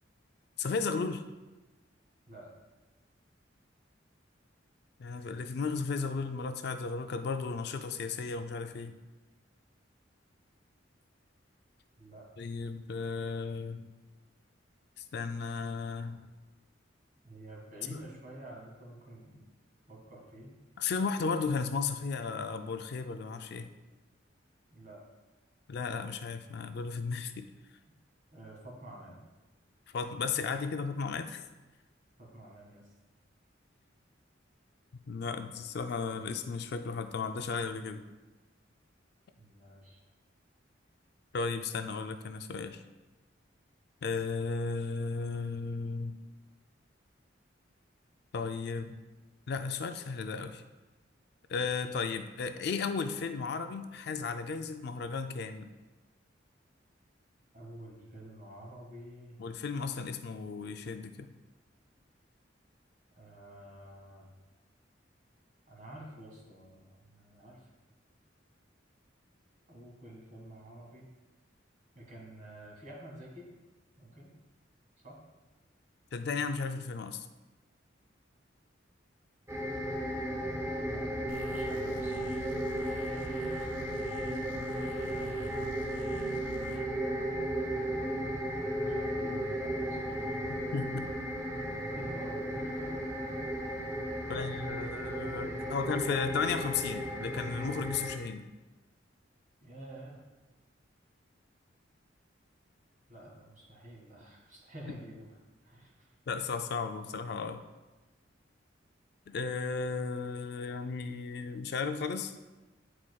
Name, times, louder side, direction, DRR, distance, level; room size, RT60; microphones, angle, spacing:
voice 1, 0.6-1.2 5.0-9.0 12.4-13.9 15.1-16.2 17.9-18.0 20.8-23.7 25.7-27.5 29.9-31.4 35.1-38.0 41.3-42.8 44.0-46.2 48.3-49.0 49.5-50.6 51.5-55.7 59.4-61.3 76.1-77.3 90.7-91.1 94.3-98.5 106.3-107.6 109.3-112.3, left 4 dB, 55° left, 8 dB, 0.4 m, -34 dB
voice 2, 17.2-19.4 19.9-20.5 24.7-25.0 28.3-29.2 32.2-32.8 39.4-40.0 57.5-59.4 63.2-64.3 65.7-67.7 69.7-71.1 71.9-73.5 74.0-74.3 75.0-75.2 80.3-80.4 80.7-82.4 83.6-84.3 88.3-90.4 91.8-93.0 94.2-96.2 99.6-100.2 103.1-105.3 105.6-106.1, right 1 dB, 45° right, -3 dB, 1.7 m, -50 dB
sound 1, 79.5-98.2, right 1 dB, 15° right, 0.7 m, -35 dB
sound 2, 81.3-86.8, left 2 dB, 90° left, 0.7 m, -48 dB
9.0 x 4.8 x 2.3 m, 1.1 s
head